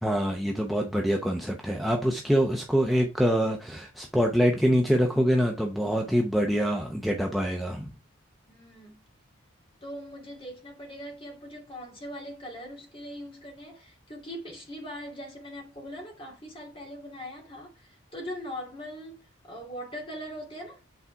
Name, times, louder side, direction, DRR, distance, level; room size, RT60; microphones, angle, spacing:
voice 1, 0.0-7.9, equal, ahead, 0.7 m, -25 dB
voice 2, 8.5-9.1 9.8-20.8, equal, 25° left, 2.4 m, -41 dB
8.3 x 4.2 x 4.6 m
head